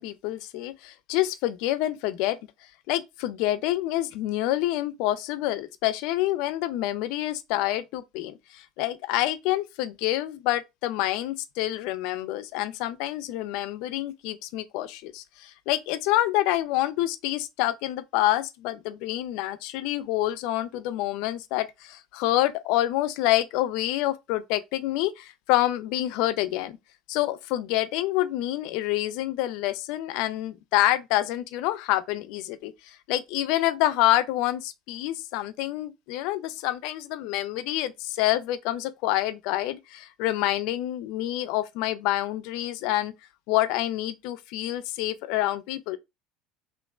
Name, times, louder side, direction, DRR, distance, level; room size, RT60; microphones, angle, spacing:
voice 1, 0.0-2.4 2.9-26.8 27.1-43.1 43.5-46.0, left 15 dB, 70° left, 0.3 m, -27 dB
3.6 x 2.5 x 2.4 m
hypercardioid pair, 80°, 0 cm